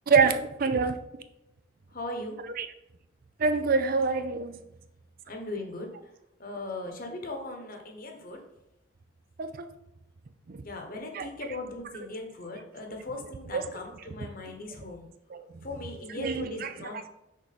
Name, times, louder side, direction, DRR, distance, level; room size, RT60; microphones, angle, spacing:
voice 1, 0.1-1.0 2.6-2.7 3.4-4.6 9.4-9.7 10.5-10.6 11.1-11.3 13.5-13.6 15.3-15.5 16.2-16.9, right 4 dB, 45° right, 0.4 m, -26 dB
voice 2, 1.9-2.4 5.3-5.9 6.4-8.4 10.6-15.1 15.6-17.1, left 2 dB, 45° left, 1.1 m, -38 dB
6.5 x 4.7 x 4.2 m
head